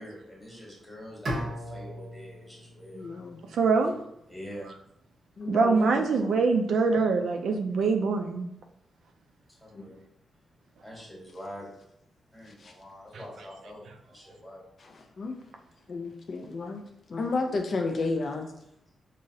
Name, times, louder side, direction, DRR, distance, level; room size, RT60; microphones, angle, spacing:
voice 1, 0.0-3.0 4.3-4.7 9.6-10.0 10.8-11.6 12.3-13.9 14.1-14.6, equal, 5° left, -5 dB, 1.2 m, -44 dB
Bowed string instrument, 1.2-4.3, equal, 55° right, 0.7 m, -38 dB
voice 2, 2.9-3.4 5.4-6.4 9.7-9.9 12.5-12.7 14.8-15.4 15.9-18.5, left 3 dB, 50° left, 3 dB, 0.4 m, -33 dB
voice 3, 3.5-3.9 5.5-8.5, right 4 dB, 80° right, 4 dB, 0.3 m, -24 dB
3.8 x 2.0 x 2.6 m, 0.77 s
cardioid pair, 100°, 0 cm